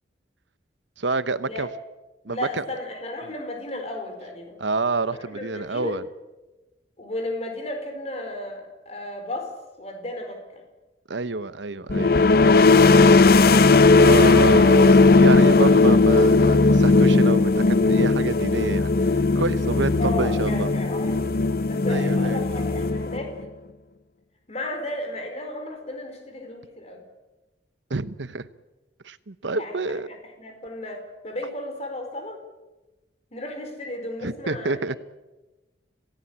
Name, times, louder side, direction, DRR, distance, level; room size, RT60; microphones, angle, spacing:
voice 1, 1.0-1.7 2.2-2.6 4.6-6.0 11.1-12.2 14.0-18.9 19.3-20.7 21.9-22.4 27.9-28.5 29.0-30.1 34.2-35.0, right 3 dB, 90° right, 14 dB, 1.0 m, -28 dB
voice 2, 2.3-4.6 5.1-6.0 7.0-9.5 9.8-10.6 20.0-21.3 21.7-23.3 24.5-27.0 29.5-32.4 33.3-35.0, left 1 dB, 35° left, 4 dB, 4.6 m, -34 dB
sound 1, 11.9-23.4, left 3 dB, 55° left, 0.7 m, -17 dB
27.5 x 17.5 x 8.6 m, 1.1 s
head